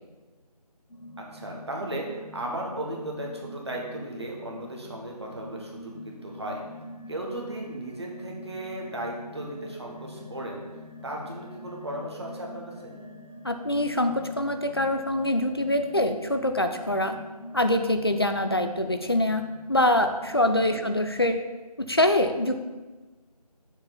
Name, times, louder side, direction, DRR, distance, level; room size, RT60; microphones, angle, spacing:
sound 1, 0.9-20.7, left 1 dB, 65° left, 1.6 m, -44 dB
voice 1, 1.3-6.6 7.1-10.7 11.0-12.9 20.6-20.8, right 1 dB, 40° right, -1 dB, 1.5 m, -36 dB
voice 2, 13.4-17.2 17.5-19.4 19.7-21.4 21.8-22.6, left 1 dB, 40° left, 7 dB, 0.5 m, -24 dB
7.0 x 5.8 x 4.1 m, 1.2 s
figure-of-eight pair, 170°, 21 cm